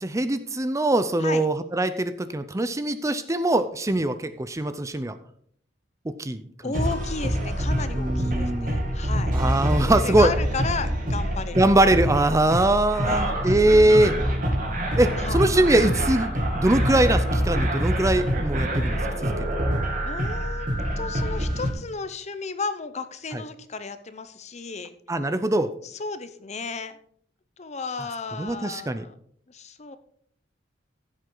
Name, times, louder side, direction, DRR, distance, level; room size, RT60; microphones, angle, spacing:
voice 1, 0.0-5.2 6.1-6.7 7.9-8.7 9.3-10.3 11.6-14.2 15.0-19.3 23.3-23.4 25.1-25.7 28.4-29.0, right 1 dB, 15° right, 12 dB, 0.5 m, -22 dB
voice 2, 6.6-9.4 9.7-11.7 12.0-12.2 12.9-13.3 15.2-15.4 20.0-24.9 25.8-26.9 27.6-29.1 29.5-30.0, left 4 dB, 40° left, 12 dB, 0.8 m, -34 dB
sound 1, 6.7-21.7, equal, 45° right, 2.4 m, -26 dB
15.0 x 8.0 x 3.9 m, 0.63 s
head